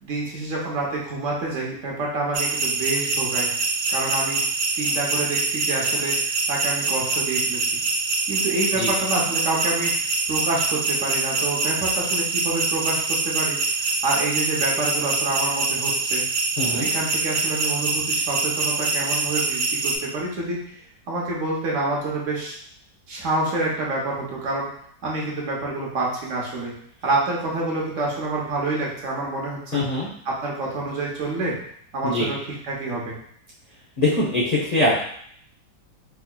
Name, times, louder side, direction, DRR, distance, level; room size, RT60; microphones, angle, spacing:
voice 1, 0.0-3.5 3.9-4.4 4.7-6.2 6.5-7.6 8.3-9.9 10.3-16.2 16.7-20.7 21.1-22.5 23.1-24.7 25.0-26.7 27.0-29.8 30.2-31.5 31.9-32.4 32.6-33.2, right 2 dB, 55° right, -3 dB, 1.1 m, -27 dB
sound 1, 2.3-20.0, right 3 dB, 85° right, 1.4 m, -24 dB
voice 2, 16.6-16.9 29.7-30.1 32.0-32.3 34.0-35.0, left 1 dB, 55° left, -7 dB, 0.4 m, -22 dB
4.6 x 2.8 x 2.2 m, 0.65 s
omnidirectional pair, 1.9 m